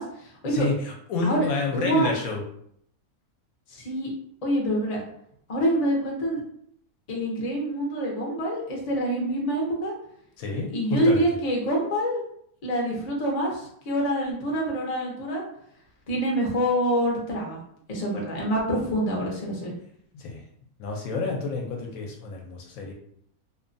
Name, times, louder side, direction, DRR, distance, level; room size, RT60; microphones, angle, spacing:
voice 1, 0.0-0.7 1.2-1.5 1.7-2.1 3.7-4.1 4.4-5.0 5.5-6.4 7.1-9.9 10.7-12.2 12.6-15.4 16.1-17.6 17.9-19.7, right 1 dB, 45° left, -2 dB, 0.5 m, -26 dB
voice 2, 0.5-2.4 10.4-11.2 20.1-20.4 20.8-22.9, left 3 dB, 70° left, 0 dB, 0.9 m, -29 dB
2.8 x 2.2 x 2.5 m, 0.68 s
omnidirectional pair, 1.6 m